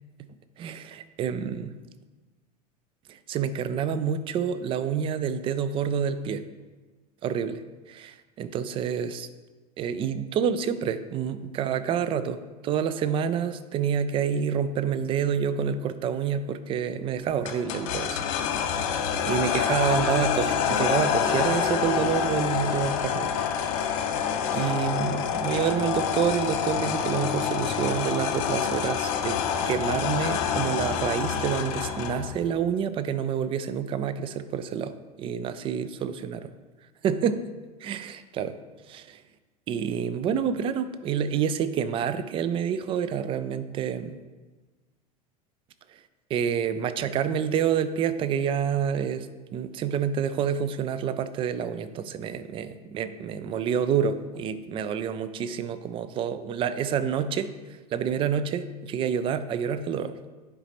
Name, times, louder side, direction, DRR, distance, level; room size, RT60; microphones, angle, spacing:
voice 1, 0.6-1.7 3.1-6.4 7.2-7.6 7.9-9.3 9.8-18.2 18.7-18.9 19.3-23.3 23.6-23.8 24.5-29.4 29.7-36.4 37.0-37.4 37.8-38.5 38.9-39.2 39.7-44.2 46.3-49.3 49.5-57.5 57.9-60.1, right 7 dB, 25° right, 13 dB, 0.4 m, -28 dB
sound 1, 17.5-32.3, left 7 dB, 50° left, 0.7 m, -27 dB
9.9 x 4.8 x 3.0 m, 1.3 s
figure-of-eight pair, 75°, 21 cm